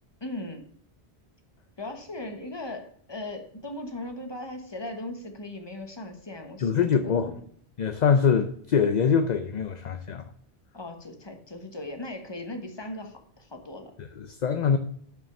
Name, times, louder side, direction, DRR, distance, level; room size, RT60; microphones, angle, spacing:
voice 1, 0.2-0.7 1.8-7.4 10.7-13.9, left 1 dB, 25° left, 1.3 m, -38 dB
voice 2, 6.6-7.4 7.8-10.2 14.0-14.8, left 6 dB, 50° left, 0.6 m, -24 dB
6.9 x 6.0 x 6.8 m
omnidirectional pair, 1.1 m